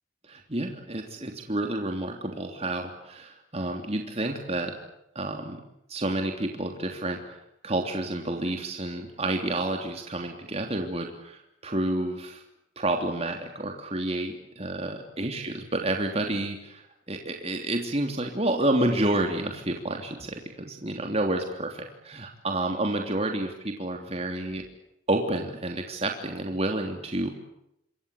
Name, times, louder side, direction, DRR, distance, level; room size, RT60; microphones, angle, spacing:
voice 1, 0.2-4.8 5.1-5.6 5.9-12.4 12.8-24.6 25.1-27.3, right 1 dB, 35° right, 3 dB, 3.2 m, -29 dB
27.0 x 25.5 x 8.4 m, 0.80 s
head